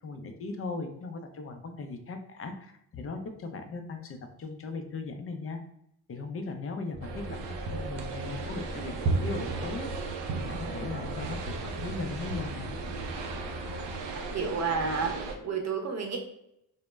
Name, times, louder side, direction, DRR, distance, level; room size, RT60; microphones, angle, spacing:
voice 1, 0.0-5.6 6.1-7.4 7.7-9.9 10.3-12.7, left 3 dB, 35° left, 6 dB, 0.4 m, -38 dB
sound 1, 6.9-14.0, right 1 dB, 5° left, 0.8 m, -44 dB
sound 2, 7.0-15.4, right 3 dB, 80° right, 0.5 m, -35 dB
voice 2, 14.3-15.1 15.4-16.2, right 5 dB, 40° right, 2 dB, 0.7 m, -30 dB
2.0 x 2.0 x 3.3 m, 0.76 s
supercardioid pair, 65°, 42 cm